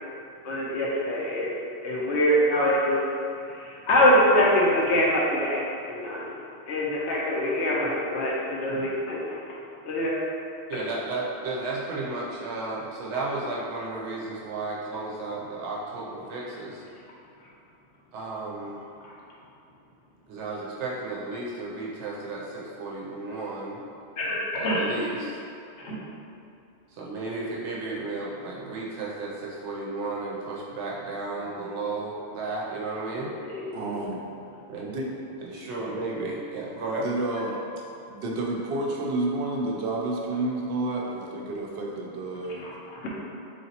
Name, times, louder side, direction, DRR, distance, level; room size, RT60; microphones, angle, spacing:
voice 1, 0.4-1.5 1.8-3.0 3.4-5.6 5.9-6.3 6.7-9.2 9.9-10.2 19.0-19.1 24.2-24.4 24.6-24.9 25.8-26.0 33.5-34.0 42.6-43.1, left 1 dB, 85° left, -5 dB, 1.1 m, -24 dB
voice 2, 10.7-16.8 18.1-18.8 20.3-23.8 24.5-25.4 25.9-26.0 26.9-33.3 34.7-35.0 35.4-37.1, right 2 dB, 90° right, -4 dB, 0.9 m, -33 dB
voice 3, 33.7-34.2 34.8-35.1 37.0-37.6 38.1-42.7, right 2 dB, 70° right, -1 dB, 0.8 m, -30 dB
3.9 x 3.3 x 2.8 m, 2.6 s
omnidirectional pair, 1.2 m